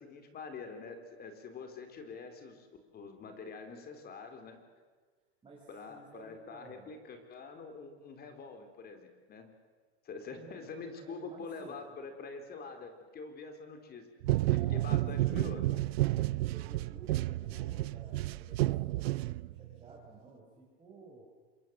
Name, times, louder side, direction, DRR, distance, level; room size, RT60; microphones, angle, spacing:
voice 1, 0.0-2.7 2.9-4.6 5.7-9.5 10.0-14.1 14.5-15.6, left 4 dB, 30° left, 6 dB, 4.0 m, -45 dB
voice 2, 5.4-6.9 10.3-10.7 10.9-11.9 14.4-15.9 16.5-21.3, right 4 dB, 15° right, -4 dB, 5.8 m, -53 dB
sound 1, 14.2-19.8, right 17 dB, 70° right, 0.7 m, -31 dB
26.5 x 22.5 x 7.7 m, 1.4 s
hypercardioid pair, 120°, 32 cm